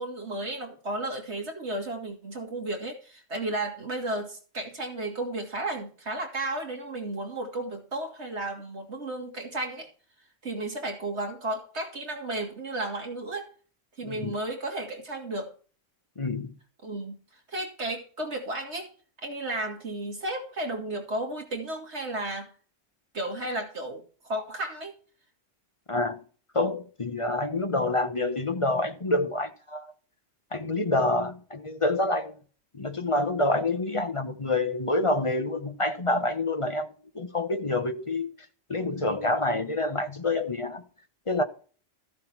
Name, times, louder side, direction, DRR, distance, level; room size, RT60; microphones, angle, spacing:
voice 1, 0.0-9.9 10.4-13.5 14.0-15.5 16.8-17.2 17.5-18.9 19.2-22.5 23.1-24.9, right 2 dB, 60° right, 3.0 m, -33 dB
voice 2, 14.0-14.3 16.2-16.6 25.9-26.2 26.5-29.9 30.5-32.4 32.7-36.9 37.1-38.3 38.7-40.8 41.3-41.4, left 2 dB, 25° left, 0.9 m, -27 dB
14.0 x 7.5 x 4.6 m
omnidirectional pair, 1.3 m